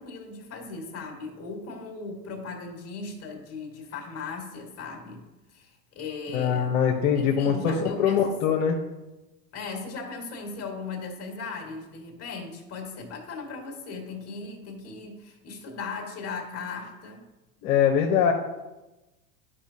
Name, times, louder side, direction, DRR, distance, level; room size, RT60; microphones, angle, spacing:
voice 1, 0.0-5.2 5.5-6.8 7.2-8.2 9.5-17.3, left 4 dB, 30° left, 2 dB, 2.0 m, -38 dB
voice 2, 6.3-8.8 17.6-18.3, left 7 dB, 55° left, 1 dB, 1.1 m, -23 dB
11.5 x 5.3 x 2.8 m, 1.1 s
hypercardioid pair, 110°, 45 cm